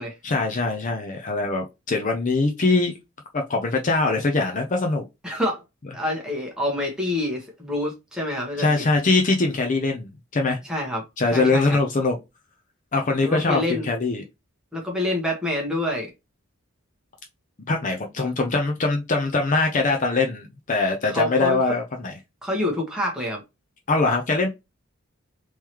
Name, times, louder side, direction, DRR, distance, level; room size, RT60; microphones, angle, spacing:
voice 1, 0.2-2.9 3.3-5.0 8.6-10.6 11.2-12.2 12.9-14.2 17.7-22.1 23.9-24.5, left 3 dB, 40° left, 0.6 m, -22 dB
voice 2, 5.2-5.6 5.9-8.8 10.6-11.0 11.3-11.8 13.2-13.9 14.7-16.1 21.0-21.6 22.4-23.4, left 1 dB, 5° right, 1.3 m, -27 dB
3.7 x 3.1 x 2.9 m
head